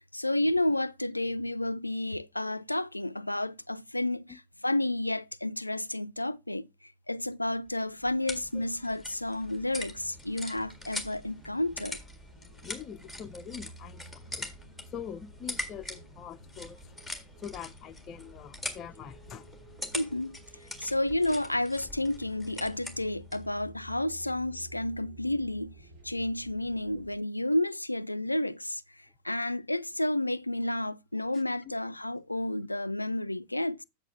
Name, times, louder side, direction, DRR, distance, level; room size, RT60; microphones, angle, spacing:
voice 1, 0.0-12.0 19.9-25.7 26.0-33.8, left 1 dB, 85° left, 0.3 m, -31 dB
sound 1, 7.7-23.5, left 2 dB, ahead, 1.8 m, -43 dB
sound 2, 9.2-27.2, equal, 55° right, 2.7 m, -52 dB
voice 2, 12.6-14.5 14.9-16.8 17.4-19.5, left 8 dB, 30° left, 0.6 m, -43 dB
8.2 x 6.8 x 3.5 m
figure-of-eight pair, 90°, 0 cm